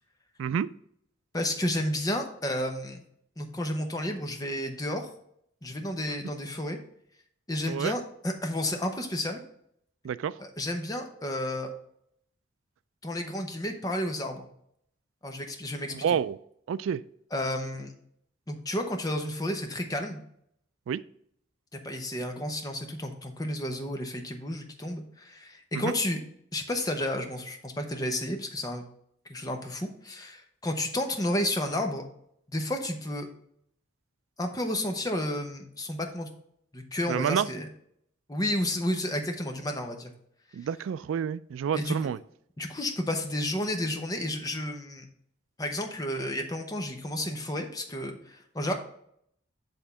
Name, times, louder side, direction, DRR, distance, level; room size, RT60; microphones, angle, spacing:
voice 1, 1.3-3.0 3.4-5.1 5.6-6.8 7.5-9.4 10.4-11.7 13.0-14.5 15.2-16.2 17.3-17.9 18.5-20.2 21.7-26.2 26.5-28.8 29.3-32.0 32.5-33.3 34.4-36.3 36.7-37.7 38.3-40.1 41.7-42.1 42.6-45.0 45.6-48.7, left 1 dB, 20° left, 4 dB, 0.8 m, -31 dB
voice 2, 15.9-16.4 16.7-17.0 20.9-21.0 25.7-25.9 37.1-37.5 40.5-42.2, right 8 dB, 85° right, 17 dB, 0.3 m, -29 dB
8.1 x 3.6 x 5.5 m, 0.70 s
head